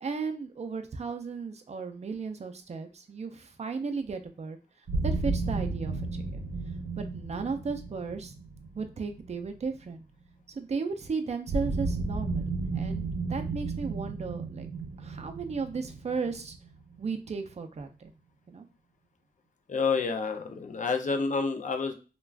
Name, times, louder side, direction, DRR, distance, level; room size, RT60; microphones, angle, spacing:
voice 1, 0.0-4.6 5.0-6.0 7.0-8.3 8.7-10.0 10.5-14.7 15.0-16.5 17.0-18.1 18.5-18.7, right 5 dB, 40° right, 6 dB, 0.4 m, -35 dB
sound 1, 4.9-9.8 11.5-17.1, right 3 dB, 85° right, 0.6 m, -33 dB
voice 2, 19.7-21.9, left 4 dB, 50° left, 6 dB, 0.4 m, -29 dB
2.4 x 2.2 x 3.3 m, 0.34 s
wide cardioid pair, 115°, 17 cm